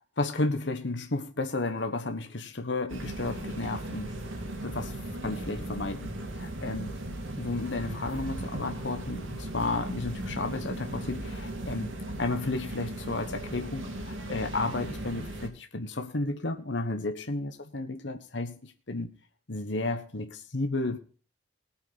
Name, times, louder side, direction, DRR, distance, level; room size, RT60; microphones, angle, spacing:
voice 1, 0.2-4.1 4.6-5.0 5.2-7.0 7.4-11.9 12.2-19.1 19.5-21.0, left 2 dB, 70° left, 1.4 m, -32 dB
sound 1, 2.9-15.5, right 1 dB, 85° right, 2.7 m, -37 dB
18.5 x 8.7 x 4.3 m
head